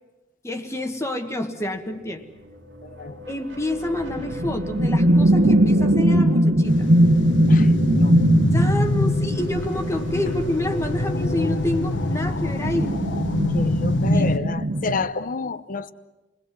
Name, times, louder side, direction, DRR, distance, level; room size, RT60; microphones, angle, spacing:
voice 1, 0.4-2.2 3.3-6.9 8.5-12.9 14.1-14.3, left 1 dB, 15° left, 5 dB, 1.6 m, -28 dB
sound 1, 1.6-15.1, left 1 dB, 80° right, 3.0 m, -41 dB
voice 2, 2.8-3.2 7.5-8.1 13.5-15.9, left 4 dB, 50° left, 13 dB, 1.0 m, -30 dB
sound 2, 4.1-10.4 12.3-15.1, right 1 dB, 60° right, 1.2 m, -20 dB
sound 3, 6.6-14.4, left 1 dB, 80° left, 1.6 m, -24 dB
28.5 x 21.0 x 7.5 m, 1.1 s
head